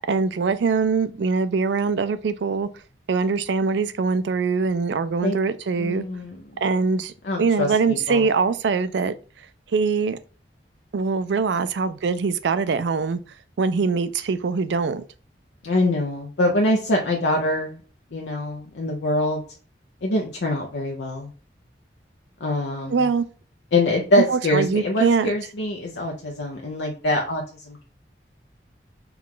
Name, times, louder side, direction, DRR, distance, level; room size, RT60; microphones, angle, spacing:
voice 1, 0.1-2.7 3.1-6.0 6.6-7.1 7.4-9.1 9.7-10.2 10.9-13.2 13.6-15.0 22.9-23.2 24.2-25.3, right 4 dB, 80° right, 0.4 m, -22 dB
voice 2, 5.8-6.4 7.2-8.3 15.6-17.8 18.1-19.4 20.0-21.3 22.4-23.0 23.7-27.8, left 1 dB, 85° left, 0.7 m, -24 dB
4.6 x 2.4 x 3.7 m
head